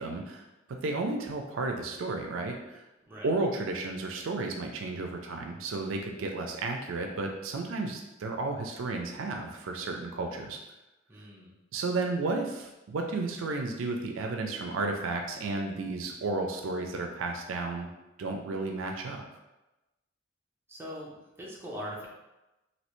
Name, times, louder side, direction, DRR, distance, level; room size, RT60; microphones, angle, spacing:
voice 1, 0.0-2.8 3.2-10.6 11.7-17.9 18.2-19.2, right 3 dB, 70° right, 3 dB, 0.4 m, -33 dB
voice 2, 11.1-11.5 20.7-22.1, equal, 10° right, -5 dB, 0.7 m, -41 dB
3.1 x 2.7 x 3.0 m, 1.0 s
head